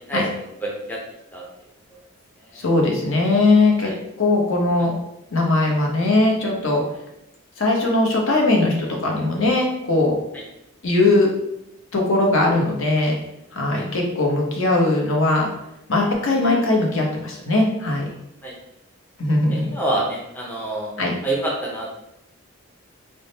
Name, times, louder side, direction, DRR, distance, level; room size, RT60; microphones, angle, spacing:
voice 1, 0.6-1.0 1.3-1.4 2.4-2.7 3.8-4.0 5.6-5.7 10.3-10.4 13.7-13.8 18.4-18.5 19.5-20.9 21.2-22.0, right 1 dB, 10° left, -3 dB, 0.5 m, -27 dB
voice 2, 2.5-3.9 4.2-4.9 5.3-6.8 7.6-10.1 10.8-11.3 11.9-13.1 13.5-15.5 15.9-18.1 19.2-19.7 21.0-21.1, left 2 dB, 70° left, 0 dB, 0.8 m, -19 dB
3.5 x 2.1 x 3.9 m, 0.83 s
head